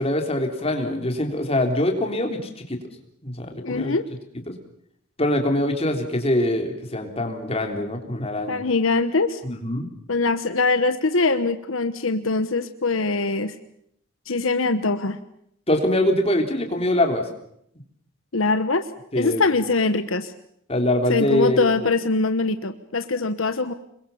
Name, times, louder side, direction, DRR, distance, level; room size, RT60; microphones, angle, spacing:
voice 1, 0.0-2.8 3.2-3.9 4.5-4.6 5.2-8.6 9.4-9.9 15.7-17.3 19.1-19.4 20.7-21.7, left 1 dB, 30° left, 4 dB, 3.6 m, -23 dB
voice 2, 3.6-4.0 8.5-9.4 10.1-13.5 14.3-15.2 18.3-18.9 19.1-20.3 21.1-23.7, left 3 dB, 80° left, 10 dB, 1.2 m, -22 dB
26.5 x 22.5 x 7.1 m, 0.71 s
head